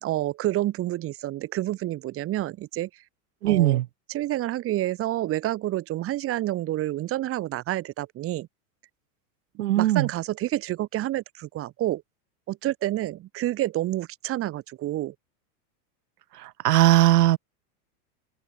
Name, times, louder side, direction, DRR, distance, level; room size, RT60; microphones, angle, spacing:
voice 1, 0.0-2.9 3.4-3.8 4.1-8.5 9.8-12.0 12.5-15.1, right 15 dB, 30° right, 4.5 m, -28 dB
voice 2, 3.4-3.9 9.6-10.1 16.4-17.4, right 15 dB, 90° right, 4.3 m, -19 dB
open air
supercardioid pair, 165°, 45 cm